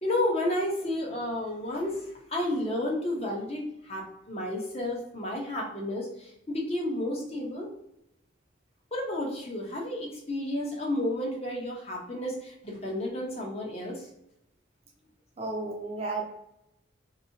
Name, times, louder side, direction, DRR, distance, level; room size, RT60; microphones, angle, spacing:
voice 1, 0.0-7.7 8.9-14.1, left 1 dB, 30° left, -1 dB, 0.8 m, -31 dB
voice 2, 15.4-16.2, right 3 dB, 30° right, 0 dB, 0.5 m, -32 dB
3.5 x 3.0 x 2.7 m, 0.83 s
head